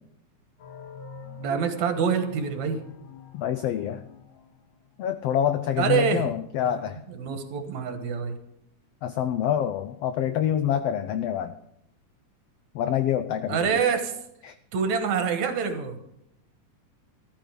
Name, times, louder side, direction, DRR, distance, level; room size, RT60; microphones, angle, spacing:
sound 1, 0.6-5.1, left 5 dB, 65° left, 2.5 m, -45 dB
voice 1, 1.4-2.8 5.8-6.3 6.6-8.4 13.5-14.2 14.7-16.0, right 6 dB, 70° right, 7 dB, 2.6 m, -26 dB
voice 2, 3.3-4.0 5.0-7.0 9.0-11.5 12.7-13.7 14.4-14.5, left 10 dB, 85° left, 11 dB, 1.4 m, -26 dB
14.0 x 14.0 x 5.1 m, 0.78 s
omnidirectional pair, 3.5 m